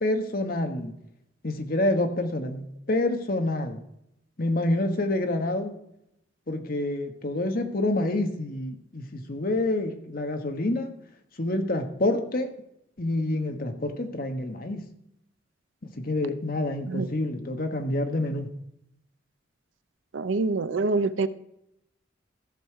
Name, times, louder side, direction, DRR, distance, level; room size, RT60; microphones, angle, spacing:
voice 1, 0.0-0.9 1.4-3.8 4.4-5.7 6.5-10.9 11.4-12.5 13.0-14.8 16.0-18.5, left 1 dB, 50° left, 6 dB, 1.2 m, -27 dB
voice 2, 20.1-21.3, right 3 dB, 80° right, 13 dB, 0.6 m, -25 dB
14.5 x 6.3 x 4.8 m, 0.79 s
head